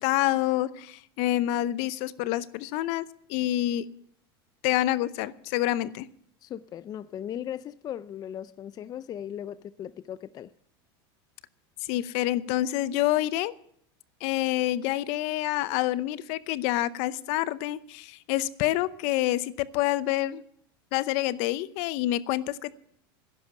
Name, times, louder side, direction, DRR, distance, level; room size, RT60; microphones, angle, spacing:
voice 1, 0.0-3.8 4.6-6.1 11.8-13.5 14.2-20.4 20.9-22.8, left 15 dB, 60° left, 0.7 m, -27 dB
voice 2, 6.4-10.5, left 10 dB, 30° left, 0.4 m, -38 dB
11.5 x 10.5 x 7.2 m
supercardioid pair, 120°, 13 cm